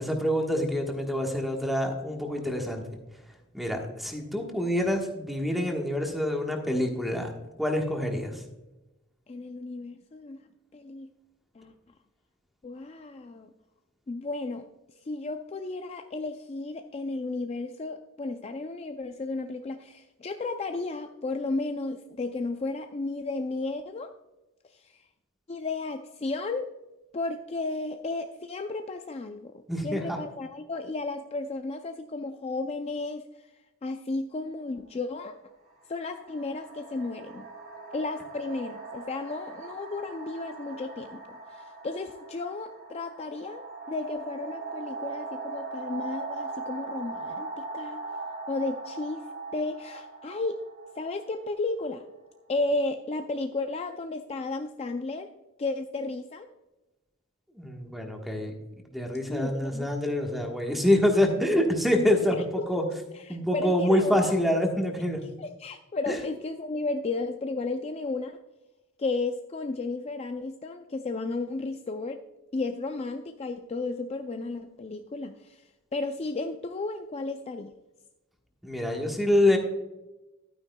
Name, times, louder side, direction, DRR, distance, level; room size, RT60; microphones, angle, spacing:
voice 1, 0.0-2.8 3.5-7.3 7.6-8.4 29.7-30.2 57.5-58.5 58.9-62.8 63.3-65.2 66.1-66.2 78.6-79.6, left 1 dB, ahead, 2 dB, 1.2 m, -26 dB
voice 2, 9.3-10.4 10.7-11.1 11.5-11.7 12.6-13.5 14.1-14.6 15.0-24.1 24.6-25.0 25.5-26.7 27.1-33.5 33.8-35.3 35.9-37.5 37.9-41.2 41.5-48.0 48.5-49.2 49.5-50.6 51.0-52.0 52.5-55.3 55.6-56.5 59.3-59.9 62.3-62.7 63.1-64.4 65.4-68.4 69.0-72.2 72.5-77.7, left 3 dB, 30° left, 6 dB, 0.4 m, -33 dB
sound 1, 34.5-34.7 35.6-52.3, right 3 dB, 50° right, 1.8 m, -40 dB
11.5 x 9.3 x 2.2 m, 1.0 s
head